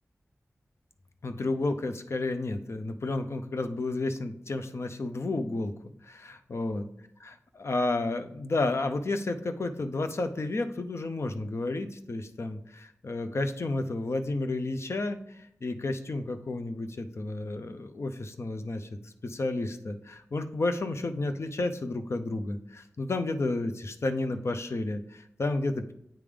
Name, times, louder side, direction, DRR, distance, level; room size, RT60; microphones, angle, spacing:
voice 1, 1.2-5.7 6.0-6.8 7.2-25.9, left 2 dB, 60° left, 8 dB, 0.5 m, -31 dB
8.8 x 3.6 x 3.4 m, 0.74 s
wide cardioid pair, 60°, 5 cm